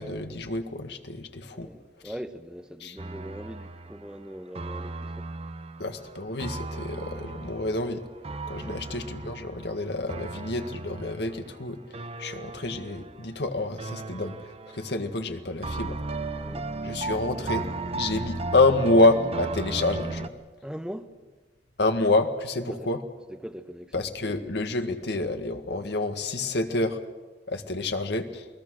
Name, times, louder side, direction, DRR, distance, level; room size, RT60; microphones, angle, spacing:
voice 1, 0.0-1.7 2.0-2.1 2.8-3.0 5.8-8.0 8.5-16.0 16.8-17.7 17.9-20.3 21.8-23.0 23.9-27.0 27.5-28.5, left 2 dB, 70° left, 1.8 m, -27 dB
voice 2, 1.5-5.3 8.6-8.9 16.3-16.7 20.6-21.1 22.7-22.9 23.3-23.9, equal, 5° right, 1.0 m, -41 dB
sound 1, 3.0-13.5 13.8-15.2 15.6-20.3, right 3 dB, 35° right, 0.9 m, -36 dB
29.0 x 19.0 x 6.4 m
head